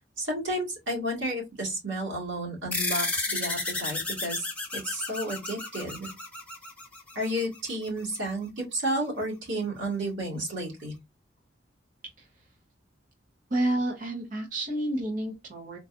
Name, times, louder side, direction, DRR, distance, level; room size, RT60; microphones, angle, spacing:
voice 1, 0.2-4.5 4.7-6.1 7.2-10.9, right 1 dB, 75° right, 1.8 m, -32 dB
sound 1, 2.7-7.6, left 3 dB, 5° left, 0.7 m, -32 dB
voice 2, 13.5-15.8, right 1 dB, 45° right, 0.8 m, -29 dB
3.8 x 2.3 x 2.5 m
head